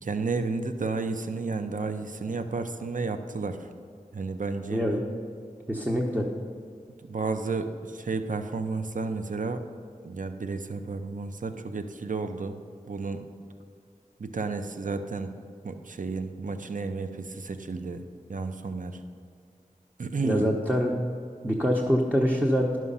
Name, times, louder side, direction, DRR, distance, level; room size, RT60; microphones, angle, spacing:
voice 1, 0.0-3.6 4.1-4.8 7.1-9.6 10.0-12.6 12.9-13.2 14.2-15.3 15.6-18.0 18.3-19.0 20.0-20.5, right 4 dB, 65° right, 8 dB, 0.7 m, -32 dB
voice 2, 4.7-5.0 5.7-6.3 20.2-20.9 21.4-22.8, equal, 10° right, -2 dB, 0.9 m, -25 dB
11.0 x 6.2 x 5.6 m, 2.3 s
wide cardioid pair, 45°, 15 cm